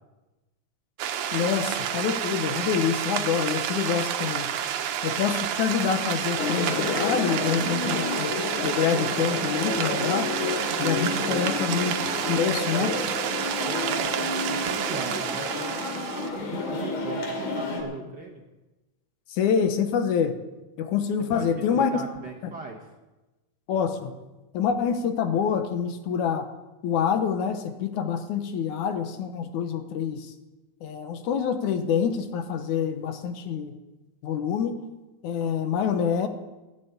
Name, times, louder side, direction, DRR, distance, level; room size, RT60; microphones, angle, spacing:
sound 1, 1.0-16.3, right 9 dB, 80° right, 2.3 m, -29 dB
voice 1, 1.3-4.5 5.0-8.3 8.6-10.3 10.8-12.0 12.3-12.9 19.3-20.4 20.8-22.0 23.7-24.1 24.5-26.5 26.8-30.3 30.8-33.8 34.2-34.8 35.2-36.3, left 7 dB, 80° left, 8 dB, 2.5 m, -26 dB
sound 2, 6.4-17.8, left 3 dB, 65° left, 3.4 m, -30 dB
voice 2, 11.1-11.5 12.8-12.9 13.7-18.4 21.3-22.9, right 4 dB, 45° right, 1 dB, 1.5 m, -38 dB
14.5 x 9.2 x 8.1 m, 1.1 s
omnidirectional pair, 3.4 m